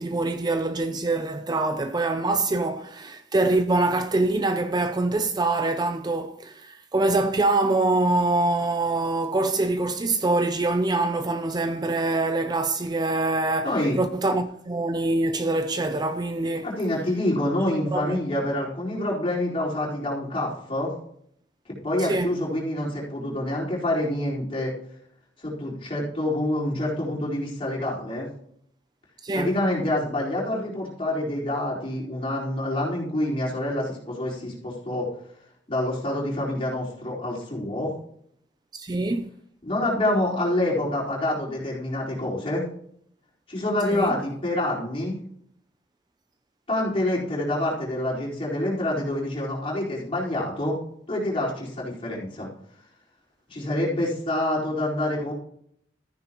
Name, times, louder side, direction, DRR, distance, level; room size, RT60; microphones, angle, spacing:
voice 1, 0.0-16.7 17.6-18.2 22.0-22.3 29.2-29.6 38.7-39.3 43.9-44.2, right 2 dB, 20° right, 0.5 m, -24 dB
voice 2, 13.6-14.0 16.6-20.9 21.8-24.7 25.4-28.3 29.3-35.1 35.7-37.9 39.6-42.6 43.5-45.2 46.7-50.8 51.1-52.5 53.5-55.3, left 1 dB, 30° left, 4.4 m, -27 dB
14.0 x 9.8 x 3.0 m
head